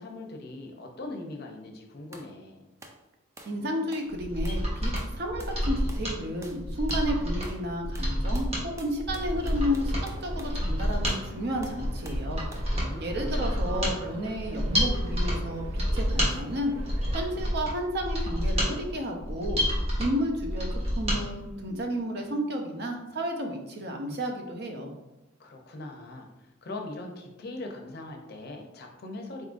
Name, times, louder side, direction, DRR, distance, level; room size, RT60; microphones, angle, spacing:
voice 1, 0.0-2.6 12.7-14.0 25.4-29.5, left 2 dB, 50° left, 3 dB, 0.6 m, -41 dB
sound 1, 2.1-2.3 2.8-3.0 3.4-3.6 3.9-4.1 4.4-4.7 5.0-5.6 5.9-6.1 6.4-6.6 6.9-7.1 7.4-7.7 7.9-10.6 11.1-11.3 11.6-12.3 12.5-12.7, right 2 dB, 15° right, 0.3 m, -49 dB
voice 2, 3.5-16.7 17.1-19.6 20.0-24.9, equal, 50° right, 2 dB, 0.6 m, -32 dB
Mechanisms, 4.1-21.2 21.5-21.6, equal, 30° right, 1.0 m, -29 dB
sound 2, 9.0-17.5, equal, 75° right, 1.3 m, -44 dB
4.0 x 3.7 x 2.5 m, 0.95 s
head